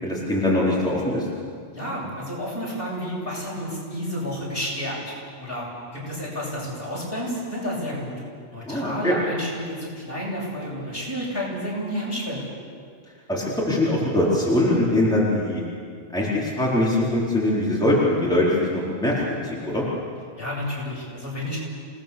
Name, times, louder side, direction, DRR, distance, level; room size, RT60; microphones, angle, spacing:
voice 1, 0.0-1.3 8.6-9.1 13.3-15.6 16.1-19.9, left 1 dB, 5° left, -7 dB, 4.3 m, -22 dB
voice 2, 1.7-5.7 5.9-8.1 8.5-12.5 20.4-21.6, equal, 50° left, -5 dB, 8.4 m, -30 dB
28.0 x 19.5 x 7.1 m, 2.1 s
omnidirectional pair, 1.2 m